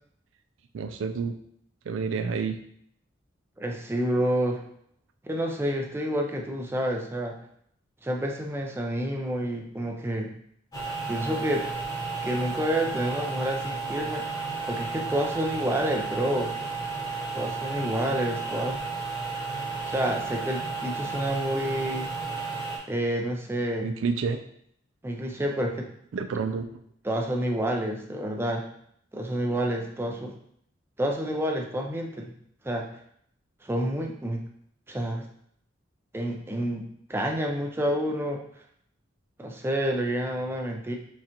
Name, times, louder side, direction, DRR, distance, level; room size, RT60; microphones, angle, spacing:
voice 1, 0.7-1.4 1.9-2.6 23.8-24.4 26.1-26.7, right 5 dB, 80° right, 8 dB, 0.4 m, -29 dB
voice 2, 3.6-4.6 5.2-7.4 8.0-10.3 11.1-11.7 12.2-14.3 14.7-16.5 17.3-18.8 19.9-22.1 22.9-23.9 25.0-25.9 27.0-28.6 29.1-30.3 31.0-32.3 32.6-32.9 33.6-34.4 34.9-35.3 36.1-38.4 39.4-41.0, equal, 10° right, 1 dB, 0.4 m, -29 dB
sound 1, 10.7-22.8, right 4 dB, 20° left, 1.0 m, -33 dB
5.8 x 2.4 x 2.9 m, 0.67 s
head